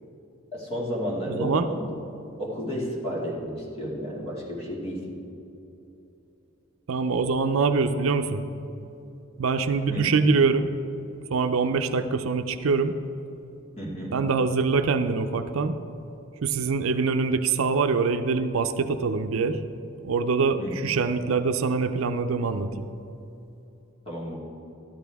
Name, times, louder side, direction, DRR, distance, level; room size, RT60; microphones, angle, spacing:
voice 1, 0.5-1.8 2.4-5.0 9.9-10.1 13.8-14.1 20.6-20.8 24.1-24.4, equal, 30° left, -4 dB, 2.2 m, -32 dB
voice 2, 1.3-1.7 6.9-8.4 9.4-10.7 11.3-12.9 14.1-15.8 16.4-19.6 20.0-22.9, right 4 dB, 75° right, 8 dB, 0.5 m, -24 dB
13.0 x 10.5 x 3.5 m, 2.9 s
head